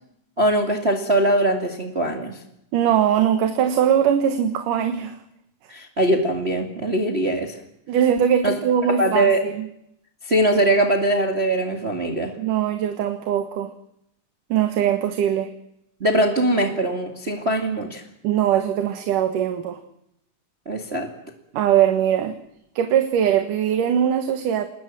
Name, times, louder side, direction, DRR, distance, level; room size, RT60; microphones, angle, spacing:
voice 1, 0.4-2.4 5.7-7.6 8.4-8.5 9.0-9.4 10.2-12.3 16.0-18.0 20.7-21.1, right 1 dB, 20° right, 4 dB, 2.2 m, -21 dB
voice 2, 2.7-5.2 7.9-9.7 12.4-13.7 14.5-15.5 18.2-19.8 21.5-22.3 22.8-24.7, right 9 dB, 90° right, 7 dB, 3.1 m, -21 dB
27.5 x 20.5 x 7.6 m, 0.78 s
omnidirectional pair, 3.6 m